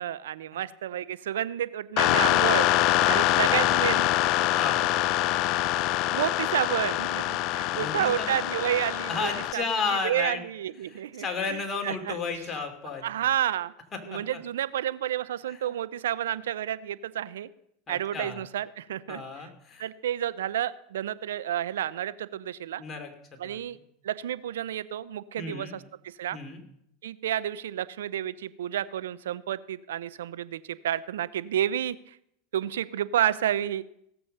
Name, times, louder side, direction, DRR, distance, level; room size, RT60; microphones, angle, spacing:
voice 1, 0.0-2.7 3.0-4.1 6.1-9.6 9.9-12.2 13.0-13.7 14.1-17.5 17.9-19.5 19.8-22.8 23.4-23.8 24.0-26.4 27.0-32.2 32.5-33.8, right 11 dB, 85° right, 16 dB, 0.6 m, -30 dB
sound 1, 2.0-9.5, left 15 dB, 55° left, 0.4 m, -24 dB
voice 2, 3.2-3.7 4.5-4.9 7.7-8.3 9.1-10.4 10.8-13.1 14.1-14.2 15.5-15.8 17.9-18.4 19.1-19.9 22.8-23.6 25.4-25.8 26.3-26.6, left 4 dB, 25° left, 3 dB, 2.8 m, -33 dB
17.0 x 7.1 x 6.6 m, 0.75 s
hypercardioid pair, 105°, 0 cm